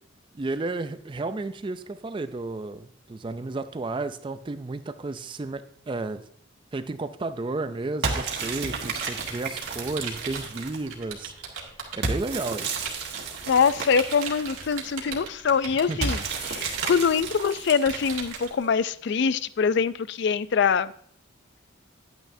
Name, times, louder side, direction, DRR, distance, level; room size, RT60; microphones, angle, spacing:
voice 1, 0.3-6.3 6.7-11.3 11.9-12.8 15.7-16.0, right 3 dB, 25° right, 11 dB, 0.3 m, -32 dB
sound 1, 8.0-10.9 12.0-15.0 16.0-18.7, right 4 dB, 55° right, 1.6 m, -32 dB
Computer keyboard, 8.3-12.2 12.8-18.5, right 5 dB, 75° right, 1.9 m, -38 dB
voice 2, 13.5-20.9, left 6 dB, 55° left, 16 dB, 0.4 m, -24 dB
10.5 x 9.1 x 2.6 m, 0.64 s
head